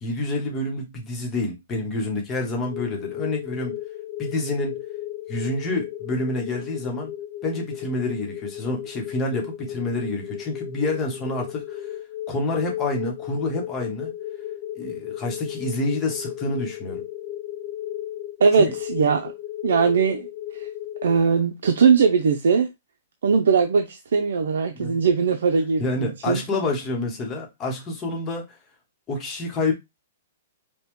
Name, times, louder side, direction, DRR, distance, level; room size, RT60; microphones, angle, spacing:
voice 1, 0.0-3.8 4.2-4.8 5.3-7.1 7.4-11.9 12.3-14.1 14.8-17.0 18.6-18.7 24.7-25.0 25.8-28.6 29.1-29.7, left 2 dB, 15° left, 1.0 m, -28 dB
sound 1, 2.6-21.2, left 12 dB, 35° left, 0.5 m, -35 dB
voice 2, 18.4-19.3 19.6-20.3 20.5-20.7 21.0-22.7 23.2-26.4, right 5 dB, 80° right, 0.6 m, -20 dB
5.3 x 2.2 x 3.1 m
hypercardioid pair, 175°, 0 cm